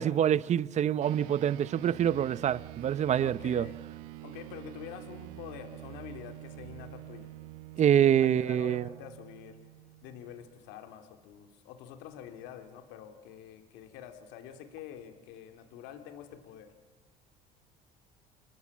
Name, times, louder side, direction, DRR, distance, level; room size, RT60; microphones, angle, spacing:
voice 1, 0.0-3.7 7.8-8.9, right 10 dB, 40° right, 0.7 m, -26 dB
sound 1, 1.0-10.8, right 17 dB, 85° right, 1.3 m, -47 dB
voice 2, 3.2-3.8 4.2-7.3 7.7-9.6 10.0-16.7, left 9 dB, 75° left, 3.3 m, -46 dB
29.0 x 20.5 x 7.5 m
supercardioid pair, 100°, 18 cm